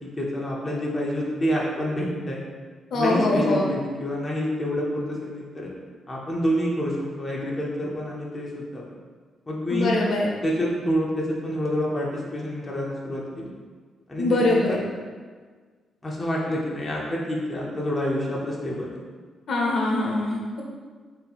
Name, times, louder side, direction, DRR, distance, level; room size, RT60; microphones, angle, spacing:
voice 1, 0.0-2.4 2.9-5.7 6.1-8.8 9.5-10.0 10.4-13.5 14.1-14.8 16.0-19.0, equal, 15° left, -4 dB, 0.6 m, -27 dB
voice 2, 2.9-3.7 9.7-10.3 14.2-14.8 19.5-20.6, left 2 dB, 55° left, -2 dB, 0.7 m, -23 dB
3.7 x 2.8 x 4.1 m, 1.5 s
cardioid pair, 145°, 0 cm